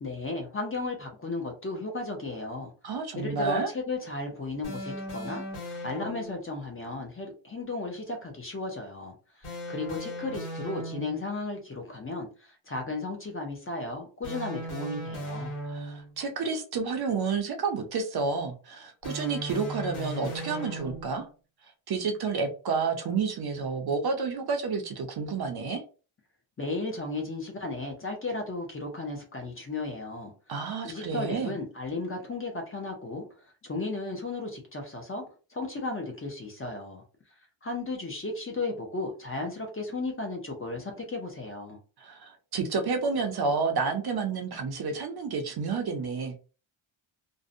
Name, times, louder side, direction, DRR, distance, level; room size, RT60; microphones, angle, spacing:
voice 1, 0.0-2.7 3.2-15.5 26.6-30.3 30.8-33.3 33.6-35.2 35.5-37.0 37.6-41.8, left 2 dB, 30° left, 2 dB, 0.5 m, -35 dB
voice 2, 2.8-3.7 15.6-21.3 21.9-25.8 30.5-31.5 42.0-46.4, right 4 dB, 55° right, 5 dB, 0.5 m, -30 dB
sound 1, 4.6-6.5 9.4-11.3 14.2-16.2 19.0-21.2, equal, 85° left, 1.3 m, -37 dB
2.6 x 2.1 x 2.5 m, 0.35 s
wide cardioid pair, 180°, 48 cm